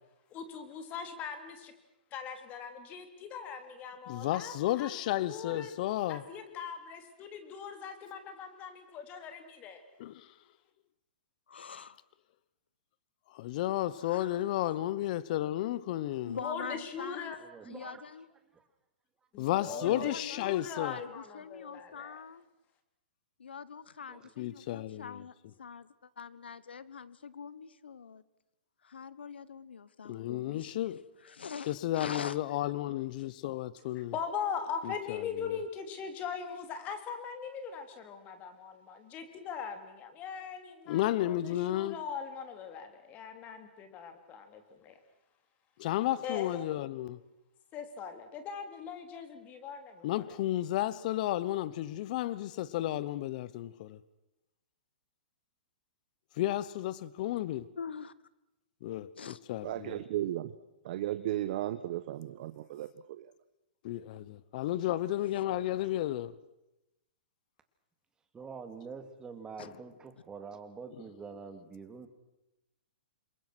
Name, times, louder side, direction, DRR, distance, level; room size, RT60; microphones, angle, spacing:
voice 1, 0.3-1.7 2.1-9.8 16.3-17.4 19.3-22.2 34.1-45.0 46.2-46.7 47.7-50.4, left 6 dB, 30° left, 3.3 m, -41 dB
voice 2, 4.1-6.2 10.0-10.1 13.3-16.4 19.4-21.0 24.4-25.2 30.1-31.0 31.7-34.1 34.8-34.9 40.9-41.9 45.8-47.2 50.0-54.0 56.4-57.7 58.8-59.9 63.8-66.3 69.6-69.7, left 14 dB, 50° left, 1.1 m, -32 dB
voice 3, 11.5-12.0 14.0-14.5 16.2-17.3 17.7-18.3 19.9-22.5 23.4-28.2 28.8-30.9 31.2-32.4 57.8-58.1 59.2-59.4 69.6-69.7, left 6 dB, 90° left, 1.2 m, -44 dB
voice 4, 17.4-18.2 19.6-20.5 24.0-24.3 68.3-72.1, right 5 dB, 15° right, 2.5 m, -46 dB
voice 5, 59.6-60.5 60.8-63.3, right 13 dB, 55° right, 1.2 m, -35 dB
28.5 x 22.5 x 6.2 m
hypercardioid pair, 140°, 6 cm